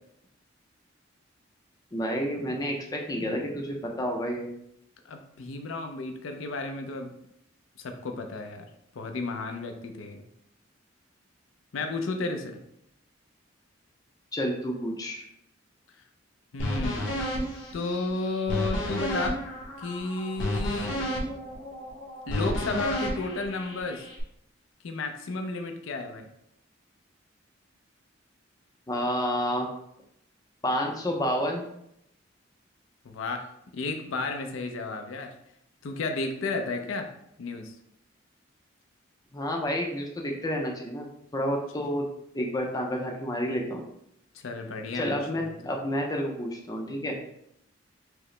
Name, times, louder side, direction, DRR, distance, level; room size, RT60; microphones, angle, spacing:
voice 1, 1.9-4.5 14.3-15.3 28.9-29.7 30.6-31.6 39.3-41.1 41.3-42.1 42.3-43.8 44.9-47.1, equal, 20° left, 1 dB, 0.4 m, -29 dB
voice 2, 5.1-7.1 7.8-8.7 8.9-10.2 11.7-12.6 16.5-17.1 17.7-19.4 19.8-21.0 22.3-24.0 24.8-26.2 33.0-33.5 33.7-35.3 35.8-37.1 37.4-37.7 44.4-45.7, left 3 dB, 90° left, 5 dB, 0.5 m, -32 dB
sound 1, 16.6-24.2, equal, 70° left, 0.9 m, -32 dB
4.7 x 2.0 x 3.1 m, 0.77 s
head